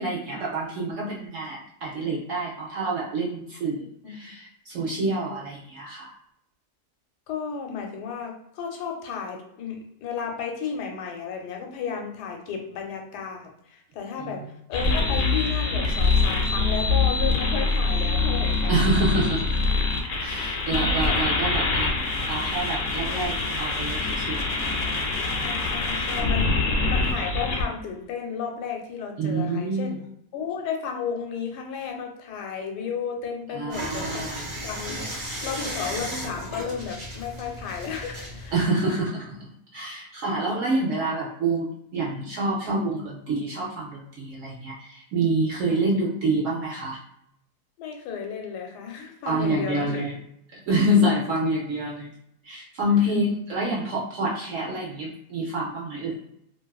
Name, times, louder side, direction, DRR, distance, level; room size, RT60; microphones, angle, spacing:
voice 1, 0.0-6.1 14.2-14.5 18.7-19.7 20.2-21.9 22.3-24.8 29.2-30.0 33.5-34.5 38.5-47.0 49.3-50.2 50.5-52.1 52.4-56.2, right 1 dB, 70° right, -3 dB, 0.8 m, -27 dB
voice 2, 7.3-14.4 14.7-18.7 25.2-29.9 30.3-38.5 38.9-39.0 45.7-45.8 47.8-50.1 52.9-53.0, left 6 dB, 85° left, 3 dB, 1.1 m, -33 dB
sound 1, 14.7-27.6, left 3 dB, 65° left, 0.8 m, -24 dB
sound 2, 33.7-38.7, equal, 35° right, 0.4 m, -35 dB
2.5 x 2.4 x 2.3 m, 0.74 s
omnidirectional pair, 1.7 m